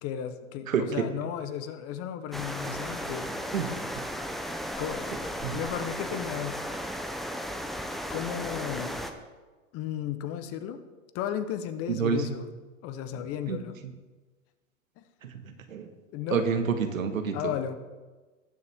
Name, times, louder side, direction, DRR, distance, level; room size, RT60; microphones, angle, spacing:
voice 1, 0.0-3.4 4.8-5.1 5.5-6.6 8.1-9.0 9.7-10.8 11.1-12.5 12.8-13.7 15.0-15.1 16.1-16.5 17.3-17.8, left 9 dB, 35° left, 11 dB, 0.9 m, -34 dB
voice 2, 0.7-1.0 3.5-3.7 5.4-5.6 11.9-12.4 13.5-13.6 15.2-15.9 16.3-17.5, right 6 dB, 85° right, 6 dB, 1.6 m, -28 dB
sound 1, 2.3-9.1, equal, ahead, 0.6 m, -35 dB
19.0 x 6.8 x 3.6 m, 1.3 s
hypercardioid pair, 115°, 40 cm